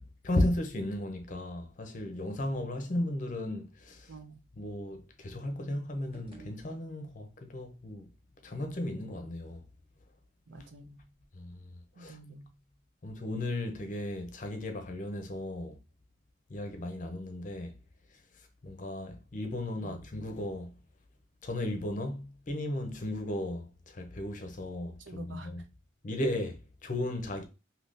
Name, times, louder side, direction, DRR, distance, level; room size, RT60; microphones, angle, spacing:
voice 1, 0.0-4.1 4.6-8.1 8.4-9.6 11.3-12.2 13.0-15.8 16.5-17.7 18.6-20.7 21.4-25.6 26.0-27.5, left 1 dB, 40° left, 0.6 m, -35 dB
voice 2, 4.1-4.4 10.5-11.0 11.9-12.5 19.8-20.0 25.0-25.7, right 3 dB, 75° right, 0.6 m, -48 dB
sound 1, 5.9-7.4, right 4 dB, 30° right, 1.1 m, -54 dB
3.6 x 2.8 x 2.5 m
head